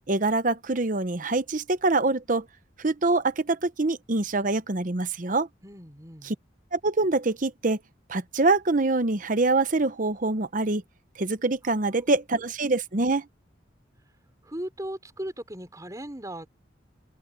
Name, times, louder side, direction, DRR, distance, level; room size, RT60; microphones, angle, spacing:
voice 1, 0.1-2.5 2.8-5.5 6.3-6.4 6.7-7.8 8.1-10.8 11.2-13.3, right 3 dB, 45° right, 0.9 m, -25 dB
voice 2, 5.6-6.3 11.6-12.2 14.4-16.5, right 1 dB, 20° right, 5.3 m, -38 dB
head